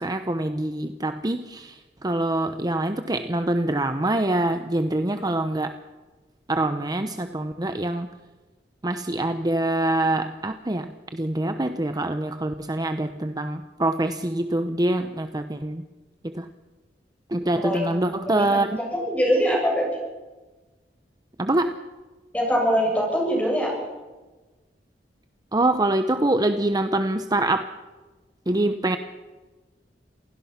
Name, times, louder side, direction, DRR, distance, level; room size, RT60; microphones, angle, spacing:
voice 1, 0.0-5.7 6.5-8.1 8.8-15.8 16.3-16.5 17.3-18.7 21.4-21.8 25.5-27.7 28.5-29.0, right 1 dB, 25° right, 8 dB, 0.9 m, -25 dB
voice 2, 17.6-18.0 18.3-19.9 22.3-23.7, equal, 10° left, -1 dB, 7.8 m, -23 dB
27.5 x 17.0 x 5.9 m, 1.2 s
head